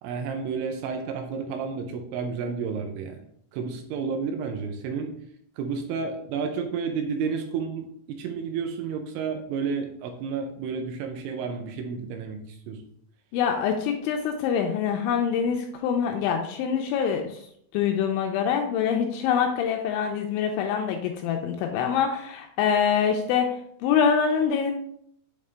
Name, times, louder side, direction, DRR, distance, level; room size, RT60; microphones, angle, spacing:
voice 1, 0.0-3.2 3.5-5.1 5.6-12.8, right 5 dB, 80° right, 4 dB, 2.9 m, -31 dB
voice 2, 13.3-17.4 17.7-24.7, left 7 dB, 85° left, 3 dB, 2.7 m, -25 dB
8.3 x 3.6 x 3.3 m, 0.68 s
omnidirectional pair, 5.7 m